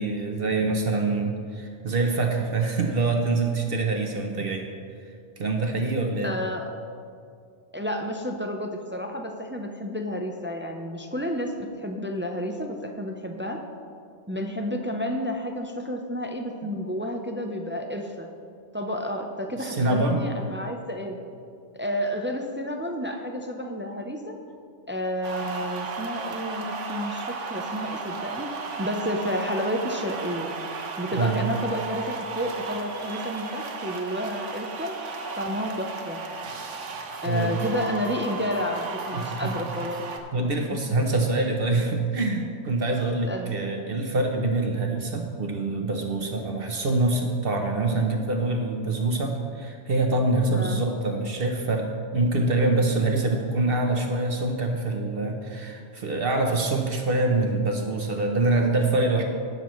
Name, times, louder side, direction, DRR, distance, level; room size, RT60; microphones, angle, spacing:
voice 1, 0.0-4.7 5.4-6.3 19.6-20.2 31.2-31.5 37.2-37.5 39.1-39.5 40.3-59.2, right 2 dB, 55° right, 3 dB, 0.9 m, -25 dB
voice 2, 6.2-6.7 7.7-13.6 14.3-18.3 18.7-21.2 21.7-24.4 24.9-30.5 31.0-35.0 35.3-36.2 37.2-40.0 43.2-43.5 46.4-46.5 50.5-50.8, equal, 20° right, 3 dB, 0.3 m, -31 dB
sound 1, 25.2-40.2, right 4 dB, 90° right, 1.2 m, -35 dB
17.5 x 6.8 x 3.1 m, 2.3 s
omnidirectional pair, 1.2 m